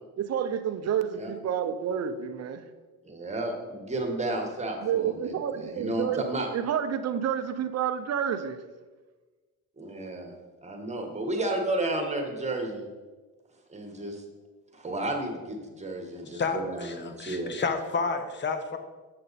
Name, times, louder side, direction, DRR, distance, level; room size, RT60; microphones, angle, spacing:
voice 1, 0.2-2.7 4.8-6.2 6.5-8.6, right 8 dB, 40° right, 9 dB, 0.6 m, -29 dB
voice 2, 3.0-5.3 5.6-6.5 9.8-10.3 10.6-12.8 13.7-14.2 14.7-17.7, right 2 dB, 20° right, 2 dB, 1.4 m, -32 dB
voice 3, 16.3-18.8, left 4 dB, 30° left, 7 dB, 0.8 m, -30 dB
7.6 x 6.6 x 4.1 m, 1.3 s
cardioid pair, 110°, 38 cm